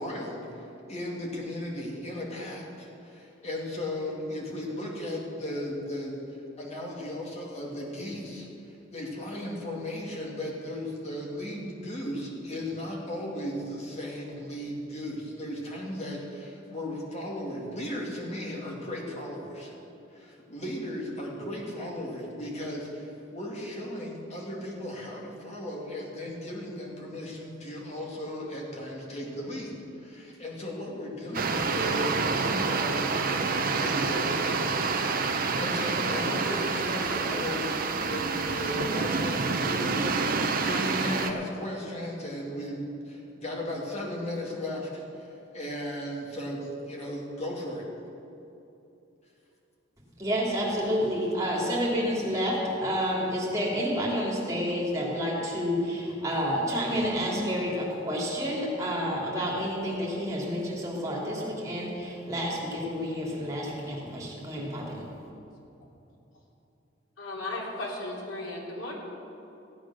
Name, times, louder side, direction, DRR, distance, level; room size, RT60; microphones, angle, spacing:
voice 1, 0.0-6.2 6.6-19.8 20.1-33.0 33.8-34.7 35.1-47.9, left 1 dB, 35° left, -2 dB, 2.5 m, -36 dB
sound 1, 31.3-41.3, right 4 dB, 50° right, 0.8 m, -28 dB
voice 2, 50.2-65.1, equal, 15° right, -4 dB, 3.0 m, -29 dB
voice 3, 67.2-68.9, left 2 dB, 90° left, -3 dB, 3.1 m, -35 dB
15.5 x 8.9 x 6.4 m, 2.8 s
head